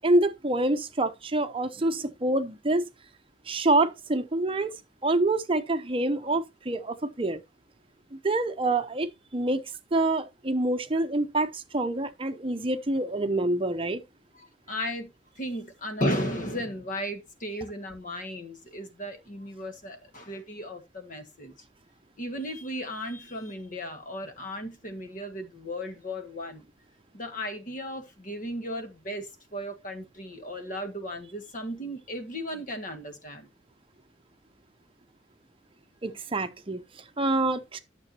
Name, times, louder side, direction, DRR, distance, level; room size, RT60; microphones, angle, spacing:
voice 1, 0.0-2.9 3.5-4.7 5.0-7.4 8.1-9.6 9.9-14.0 36.0-37.8, right 2 dB, 30° right, 0.8 m, -26 dB
voice 2, 14.7-15.1 15.4-21.5 22.2-26.7 27.1-33.5, equal, 45° left, 1.7 m, -35 dB
12.0 x 6.9 x 2.8 m
head